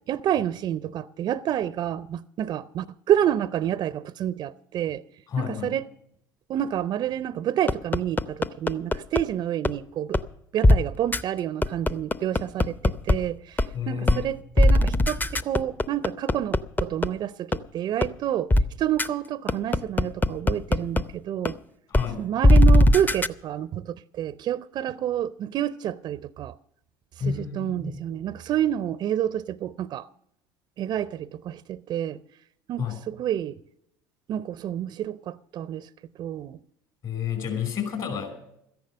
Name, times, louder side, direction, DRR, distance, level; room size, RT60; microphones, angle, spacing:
voice 1, 0.1-5.0 5.4-5.8 6.5-10.2 10.5-21.6 22.2-26.6 27.3-30.1 30.8-32.2 32.7-33.6 34.3-35.9 36.2-36.6, right 11 dB, 45° right, 0.5 m, -29 dB
voice 2, 5.3-5.7 13.7-14.3 21.9-22.2 27.2-28.0 32.8-33.0 37.0-38.3, left 7 dB, 50° left, 5.0 m, -30 dB
sound 1, 7.7-9.2 9.6-9.7 10.1-10.2 10.6-10.8 11.1-11.2 11.6-13.1 13.6-13.7 14.1-14.2 14.6-17.1 17.5-17.6 18.0-18.1 18.5-18.6 19.0-19.1 19.5-21.0 21.4-21.5 21.9-22.0 22.4-23.3, left 1 dB, 20° left, 0.6 m, -18 dB
13.5 x 10.5 x 6.5 m
hypercardioid pair, 80°, 10 cm